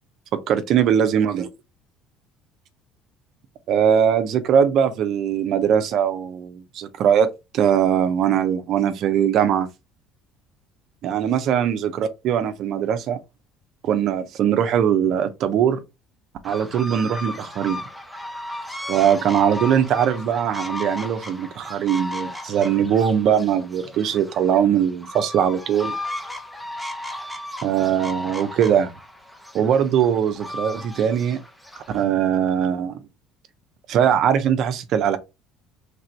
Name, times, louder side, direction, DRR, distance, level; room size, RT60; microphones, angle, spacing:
voice 1, 0.5-1.5 3.7-9.7 11.0-13.2 13.8-15.8 16.4-17.8 18.9-26.0 27.6-28.9 29.5-31.4 31.9-33.0 33.9-35.2, right 8 dB, 60° right, 0.6 m, -21 dB
sound 1, 16.4-32.0, left 1 dB, ahead, 0.8 m, -35 dB
3.3 x 2.5 x 4.4 m
supercardioid pair, 85°, 0 cm